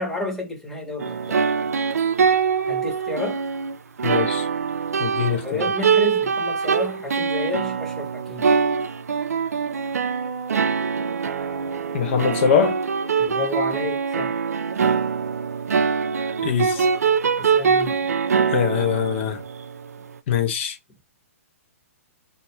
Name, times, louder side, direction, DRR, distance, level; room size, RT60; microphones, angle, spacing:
voice 1, 0.0-1.4 2.7-3.4 5.3-8.5 13.2-14.4 17.4-18.2, left 2 dB, 5° left, 0.8 m, -31 dB
sound 1, 1.0-19.9, right 6 dB, 90° right, 0.4 m, -23 dB
voice 2, 4.0-4.5 5.0-5.7 11.9-12.8 16.4-16.9 18.5-19.4 20.3-20.8, left 7 dB, 50° left, 0.6 m, -22 dB
2.2 x 2.2 x 3.0 m
hypercardioid pair, 140°, 8 cm